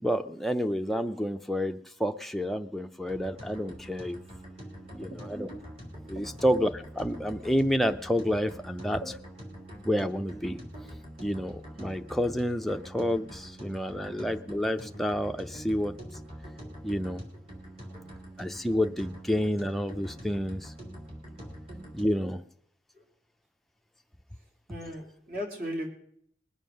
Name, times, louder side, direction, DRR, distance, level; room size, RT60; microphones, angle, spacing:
voice 1, 0.0-4.2 5.0-5.5 6.1-9.0 9.8-10.6 11.2-16.0 16.8-17.2 18.4-20.7 21.9-22.4, equal, ahead, 6 dB, 0.5 m, -29 dB
sound 1, 3.1-22.3, equal, 30° right, 3.3 m, -44 dB
voice 2, 4.8-5.4 6.1-6.4 9.0-9.1 13.9-14.0 16.6-16.8 22.9-23.0 24.4-25.9, equal, 50° right, 1 dB, 3.1 m, -39 dB
20.5 x 7.4 x 6.5 m, 0.69 s
head